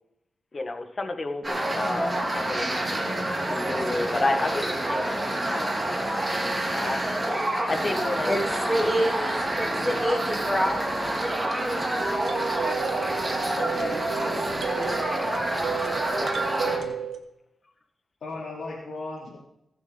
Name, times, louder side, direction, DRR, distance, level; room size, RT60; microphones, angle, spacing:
voice 1, 0.5-7.0 7.7-9.0 9.6-10.0 16.2-16.4, left 2 dB, 40° left, 6 dB, 1.5 m, -32 dB
sound 1, 1.4-16.8, right 1 dB, 20° right, 2.6 m, -28 dB
voice 2, 8.2-10.7 11.0-11.3, equal, ahead, -2 dB, 4.8 m, -27 dB
sound 2, 9.2-9.3 12.0-17.2, right 8 dB, 85° right, 1.4 m, -33 dB
voice 3, 13.6-15.0 16.6-17.0 18.2-19.4, left 3 dB, 75° left, -7 dB, 3.1 m, -36 dB
22.0 x 7.3 x 3.9 m, 0.83 s
cardioid pair, 80°, 0 cm